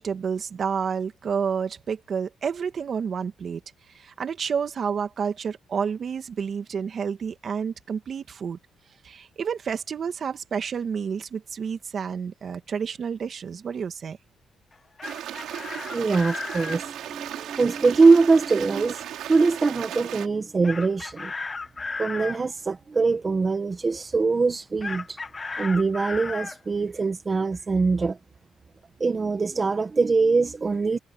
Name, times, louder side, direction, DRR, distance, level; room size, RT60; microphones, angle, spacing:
voice 1, 0.0-3.6 3.9-8.6 9.0-14.2, right 6 dB, 50° right, 2.2 m, -30 dB
Chicken rooster, 14.7-16.8 20.6-22.4 24.8-26.6, left 4 dB, 30° left, 1.7 m, -34 dB
Stream, 15.0-20.3, right 11 dB, 80° right, 3.3 m, -36 dB
voice 2, 15.9-19.0 19.3-21.3 22.0-25.2 25.6-28.2 29.0-31.0, right 4 dB, 30° right, 1.5 m, -22 dB
cardioid pair, 90°, 0 cm